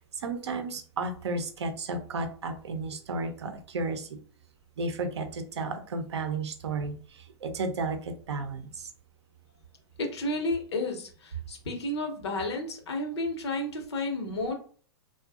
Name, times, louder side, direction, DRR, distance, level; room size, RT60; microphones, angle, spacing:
voice 1, 0.1-4.2 4.8-8.9, right 3 dB, 85° right, 7 dB, 0.5 m, -33 dB
voice 2, 10.0-14.5, left 2 dB, 75° left, 3 dB, 0.9 m, -32 dB
2.5 x 2.3 x 2.4 m, 0.43 s
hypercardioid pair, 105°, 14 cm